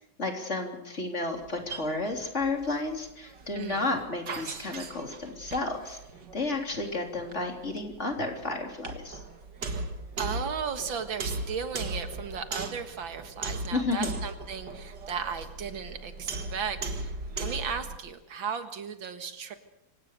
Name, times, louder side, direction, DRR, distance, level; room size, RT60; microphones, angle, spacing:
voice 1, 0.2-6.0 6.3-9.2 13.7-14.1, left 2 dB, 35° left, 3 dB, 3.8 m, -32 dB
sound 1, 1.3-18.0, right 3 dB, 60° right, 2.4 m, -38 dB
voice 2, 3.5-3.9 10.2-17.1 17.4-19.6, right 6 dB, 90° right, 8 dB, 2.4 m, -35 dB
25.0 x 18.0 x 6.7 m, 0.90 s
omnidirectional pair, 2.1 m